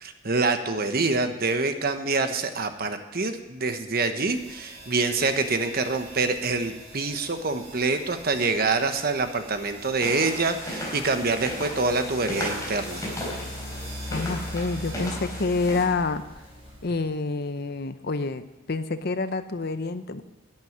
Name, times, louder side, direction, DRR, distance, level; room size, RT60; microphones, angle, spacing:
voice 1, 0.0-13.1, right 3 dB, 45° right, 8 dB, 1.1 m, -26 dB
sound 1, 4.2-17.1, equal, 30° right, 4.8 m, -42 dB
sound 2, 10.0-15.8, left 1 dB, 15° left, 4.0 m, -35 dB
voice 2, 14.1-16.2 16.8-20.2, left 3 dB, 50° left, 11 dB, 0.7 m, -28 dB
11.5 x 9.1 x 9.4 m, 1.1 s
head